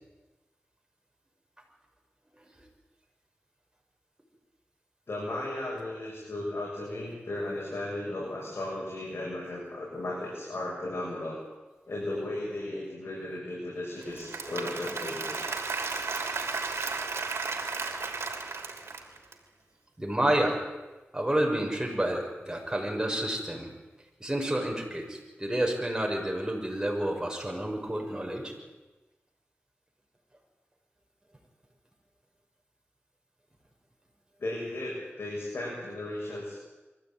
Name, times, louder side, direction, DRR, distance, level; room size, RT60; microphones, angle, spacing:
voice 1, 5.1-11.4 11.9-15.5 34.4-36.5, left 1 dB, 65° left, -4 dB, 7.6 m, -35 dB
Applause / Crowd, 14.0-19.3, right 4 dB, 85° right, 3.2 m, -34 dB
voice 2, 20.0-20.6 21.1-23.7 24.2-28.5, right 1 dB, 15° right, 1 dB, 6.6 m, -29 dB
23.0 x 15.5 x 9.3 m, 1.2 s
cardioid pair, 55°, 4 cm